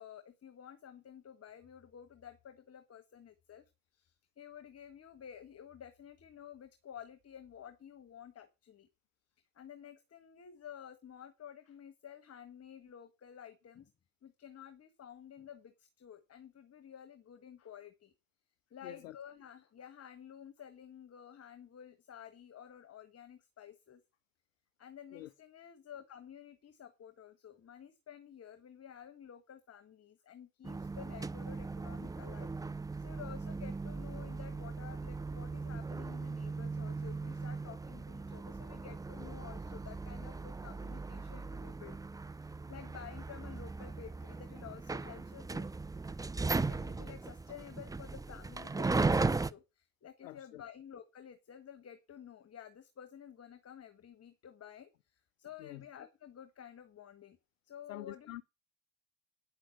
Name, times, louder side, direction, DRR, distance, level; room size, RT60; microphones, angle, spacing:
voice 1, 0.0-8.9 9.5-13.9 14.2-18.1 18.7-24.0 24.8-32.5 33.0-42.0 42.4-45.7 46.7-57.4 57.6-58.4, left 9 dB, 40° left, 1.4 m, -52 dB
voice 2, 18.8-19.2 25.1-25.3 50.2-50.6 55.6-55.8 57.9-58.4, left 15 dB, 90° left, 0.5 m, -46 dB
sound 1, 30.6-49.5, right 3 dB, 10° right, 0.5 m, -38 dB
9.0 x 6.1 x 7.6 m
hypercardioid pair, 60°, 39 cm